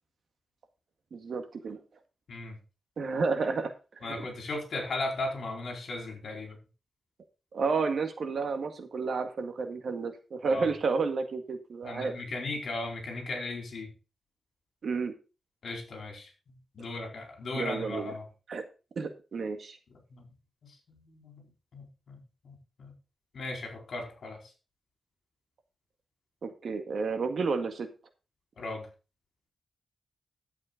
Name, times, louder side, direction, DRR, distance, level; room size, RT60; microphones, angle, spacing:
voice 1, 1.1-1.8 3.0-4.3 7.5-12.1 14.8-15.1 17.5-18.1 18.5-18.6 19.0-19.8 26.4-27.9, right 4 dB, 60° right, 7 dB, 1.9 m, -31 dB
voice 2, 4.0-6.6 10.5-10.6 11.8-13.9 15.6-16.3 16.8-18.2 20.1-20.2 20.6-20.7 21.0-21.4 21.7-22.2 22.4-22.9 23.3-24.4 28.6-28.9, left 2 dB, 60° left, 3 dB, 4.4 m, -36 dB
11.5 x 8.2 x 3.8 m, 0.31 s
wide cardioid pair, 130°, 0 cm